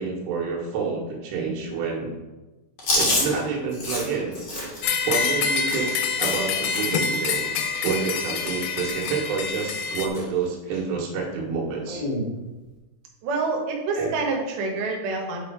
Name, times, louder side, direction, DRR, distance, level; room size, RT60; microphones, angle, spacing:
voice 1, 0.0-2.1 2.9-4.3 5.1-5.9 6.2-7.5 7.8-12.0 14.0-14.1, right 5 dB, 90° right, -1 dB, 3.8 m, -28 dB
Chewing mastication, 2.8-7.0 7.3-7.6 7.8-8.7 9.0-9.3 9.6-10.2 10.7-10.8 11.9-12.3, left 1 dB, 55° left, 1.2 m, -29 dB
sound 1, 4.8-10.1, left 5 dB, 85° left, 3.3 m, -26 dB
voice 2, 13.2-15.5, right 3 dB, 65° right, 0 dB, 2.6 m, -27 dB
8.2 x 4.4 x 4.9 m, 1.1 s
omnidirectional pair, 5.7 m